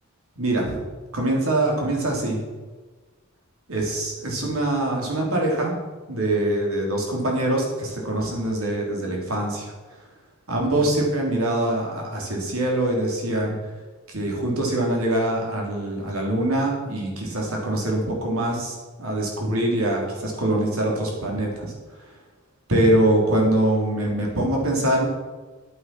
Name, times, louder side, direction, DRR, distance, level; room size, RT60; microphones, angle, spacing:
voice 1, 0.4-0.8 1.1-2.4 3.7-5.8 6.1-9.7 10.5-13.6 14.1-21.7 22.7-25.1, right 1 dB, 80° right, -1 dB, 3.4 m, -23 dB
11.0 x 8.7 x 6.0 m, 1.3 s
head